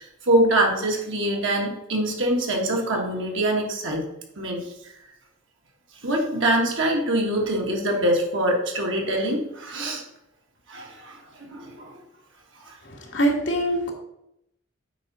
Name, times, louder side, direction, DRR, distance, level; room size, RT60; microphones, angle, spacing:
voice 1, 0.0-4.0 4.4-4.6 6.0-10.0 10.7-12.0 12.6-12.7, right 1 dB, 75° right, 0 dB, 1.8 m, -24 dB
voice 2, 12.8-13.9, right 1 dB, 65° left, 1 dB, 1.6 m, -24 dB
8.1 x 5.0 x 4.2 m, 0.81 s
head